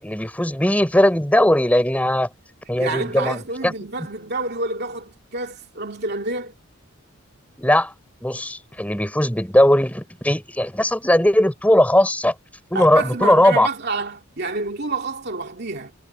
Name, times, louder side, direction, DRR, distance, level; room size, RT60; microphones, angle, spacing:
voice 1, 0.0-2.3 2.7-3.4 3.6-3.7 7.6-7.9 8.2-12.3 12.7-13.7, left 1 dB, 5° left, 4.5 m, -18 dB
voice 2, 2.8-6.5 12.7-15.9, right 3 dB, 55° right, 2.6 m, -28 dB
head